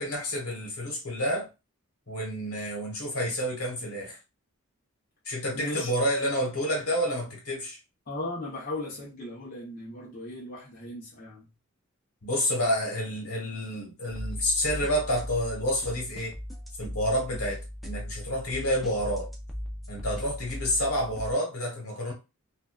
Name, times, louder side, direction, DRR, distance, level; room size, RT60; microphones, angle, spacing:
voice 1, 0.0-1.5 2.1-4.2 5.2-7.8 12.2-16.3 16.8-19.3 19.9-22.1, equal, 80° left, 1.2 m, -29 dB
voice 2, 5.5-5.9 8.1-11.5, left 2 dB, 40° left, 0.6 m, -37 dB
sound 1, 14.1-21.3, equal, ahead, 0.3 m, -38 dB
2.6 x 2.2 x 2.3 m
head